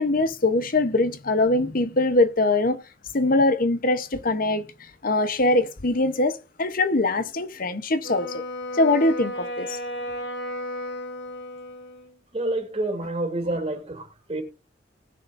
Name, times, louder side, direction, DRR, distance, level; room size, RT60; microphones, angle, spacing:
voice 1, 0.0-2.8 3.1-4.6 5.0-8.4 8.7-9.8, left 2 dB, 50° left, 1.0 m, -22 dB
Wind instrument woodwind instrument, 8.0-12.2, left 1 dB, 90° left, 5.7 m, -34 dB
voice 2, 12.3-14.4, right 2 dB, 35° right, 3.3 m, -28 dB
19.0 x 6.6 x 2.7 m
head